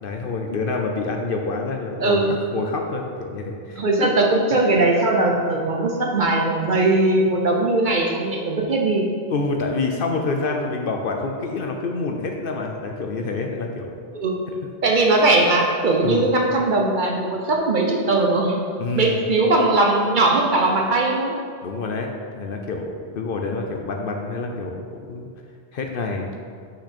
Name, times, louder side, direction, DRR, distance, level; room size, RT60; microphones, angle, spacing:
voice 1, 0.0-3.9 5.5-5.6 9.3-13.9 16.0-16.2 18.8-19.2 21.6-22.1 22.4-25.3 25.7-26.4, left 3 dB, 60° left, 2 dB, 0.7 m, -27 dB
voice 2, 3.8-9.1 14.1-14.5 14.8-18.6 18.9-21.3, right 2 dB, 50° right, 0 dB, 0.8 m, -19 dB
6.0 x 5.5 x 4.2 m, 2.2 s
omnidirectional pair, 1.1 m